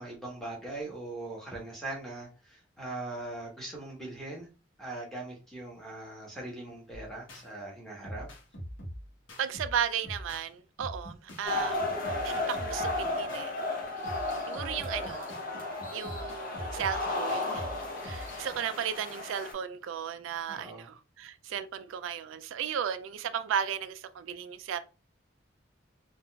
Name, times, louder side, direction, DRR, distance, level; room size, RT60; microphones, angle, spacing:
voice 1, 0.0-4.5 4.8-8.3 20.5-20.9, right 2 dB, ahead, 1.0 m, -40 dB
sound 1, 6.9-7.5 8.0-10.5 10.8-18.5, equal, 75° left, 1.0 m, -44 dB
voice 2, 9.4-13.5 14.5-15.3 15.9-17.7 18.0-24.8, right 8 dB, 90° right, 0.3 m, -35 dB
sound 2, 11.4-19.5, left 2 dB, 45° left, 0.8 m, -34 dB
3.7 x 2.4 x 2.2 m
head